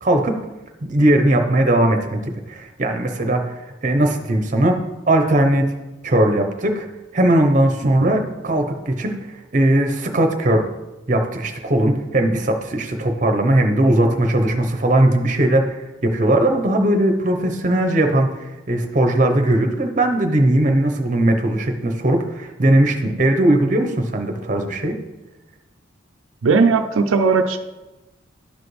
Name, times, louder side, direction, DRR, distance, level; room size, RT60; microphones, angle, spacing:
voice 1, 0.0-0.4 0.8-3.5 3.8-4.8 5.1-5.7 6.0-6.8 7.1-9.2 9.5-10.7 11.1-15.8 16.0-25.0, right 1 dB, 40° right, 4 dB, 0.8 m, -18 dB
voice 2, 26.4-27.6, right 4 dB, 90° right, 6 dB, 0.5 m, -17 dB
11.5 x 5.0 x 3.2 m, 1.1 s
head